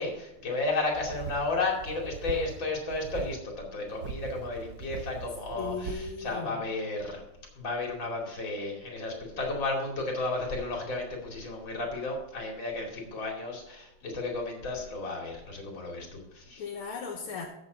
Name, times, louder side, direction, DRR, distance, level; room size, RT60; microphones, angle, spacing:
voice 1, 0.0-7.2 7.6-16.6, left 3 dB, 60° left, 0 dB, 3.3 m, -33 dB
sound 1, 0.9-2.6 2.9-3.4 3.9-6.1, right 6 dB, 60° right, 1.0 m, -41 dB
voice 2, 5.5-6.6 16.6-17.5, left 5 dB, 80° left, 1 dB, 2.0 m, -37 dB
14.0 x 7.4 x 4.0 m, 0.91 s
omnidirectional pair, 2.3 m